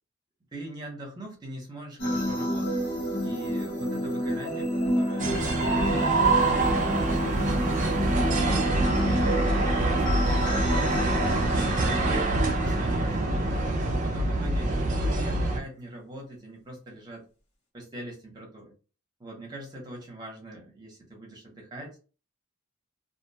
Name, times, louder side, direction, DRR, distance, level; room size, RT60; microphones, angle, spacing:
voice 1, 0.5-2.8 3.2-8.4 8.7-9.5 9.8-11.2 11.5-17.2 17.7-18.7 19.2-22.0, right 1 dB, 20° right, -1 dB, 0.9 m, -42 dB
sound 1, 2.0-13.5, equal, 70° left, 1.3 m, -30 dB
sound 2, 5.2-15.6, right 2 dB, 35° right, 0.4 m, -25 dB
2.5 x 2.2 x 2.7 m, 0.35 s
head